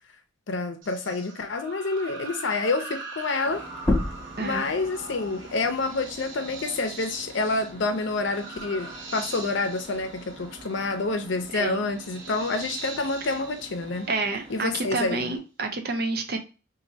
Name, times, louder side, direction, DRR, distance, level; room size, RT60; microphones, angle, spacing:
voice 1, 0.5-3.6 4.4-14.1 14.5-15.3, left 3 dB, 65° left, 7 dB, 0.6 m, -28 dB
sound 1, 0.8-14.7, right 3 dB, 75° right, 1.1 m, -42 dB
sound 2, 3.4-15.4, right 2 dB, 20° right, 1.5 m, -47 dB
sound 3, 3.8-9.0 9.4-11.2, left 2 dB, 10° left, 0.4 m, -34 dB
voice 2, 4.4-4.7 11.5-11.8 14.1-16.4, right 3 dB, 50° right, 6 dB, 0.5 m, -29 dB
4.1 x 2.6 x 2.7 m, 0.33 s
head